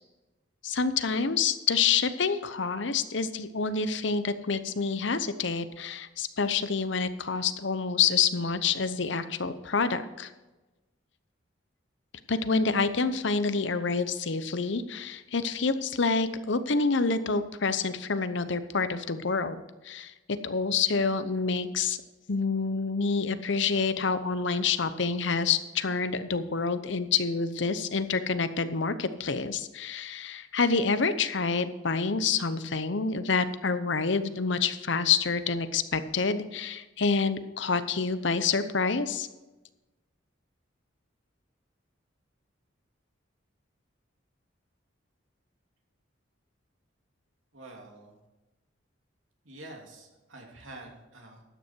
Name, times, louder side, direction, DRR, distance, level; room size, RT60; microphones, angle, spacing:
voice 1, 0.6-10.3 12.3-20.1 20.4-22.0 22.3-39.3, left 5 dB, 65° left, 12 dB, 0.8 m, -27 dB
voice 2, 47.5-48.1 49.4-51.4, right 2 dB, 85° right, 0 dB, 2.8 m, -47 dB
13.0 x 9.5 x 4.5 m, 1.1 s
head